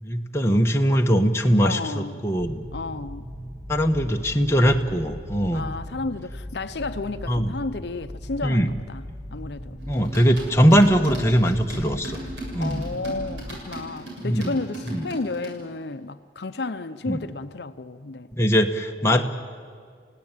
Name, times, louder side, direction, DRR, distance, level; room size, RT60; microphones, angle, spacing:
voice 1, 0.0-2.6 3.7-5.7 7.3-7.5 8.4-8.7 9.9-12.2 12.5-12.8 14.2-14.6 14.9-15.0 17.1-17.2 18.4-19.2, equal, 15° left, 1.2 m, -21 dB
voice 2, 1.6-2.3 2.7-3.3 5.5-9.8 12.6-18.3 19.0-19.2, left 3 dB, 65° left, 0.7 m, -32 dB
sound 1, 2.4-13.6, equal, 5° right, 1.6 m, -38 dB
sound 2, 9.8-15.5, right 1 dB, 80° right, 7.3 m, -37 dB
29.0 x 17.0 x 9.1 m
head